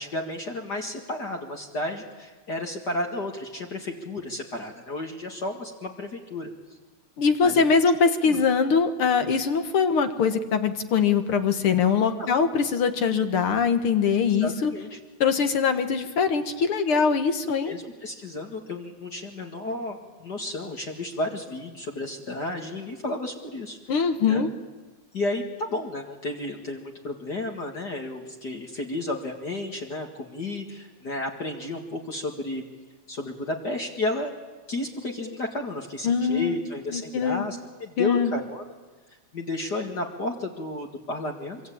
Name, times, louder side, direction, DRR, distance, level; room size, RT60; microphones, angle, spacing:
voice 1, 0.0-6.5 7.4-7.7 8.2-8.4 12.2-12.4 14.4-15.0 17.7-24.4 25.1-32.6 33.1-34.3 34.7-38.6 39.3-41.6, left 2 dB, 40° left, 1 dB, 2.3 m, -32 dB
voice 2, 7.2-14.7 15.2-17.7 23.9-24.5 36.0-36.6 36.9-37.5 38.0-38.3, left 5 dB, 55° left, 8 dB, 1.9 m, -22 dB
25.0 x 24.5 x 8.7 m, 1.3 s
omnidirectional pair, 3.3 m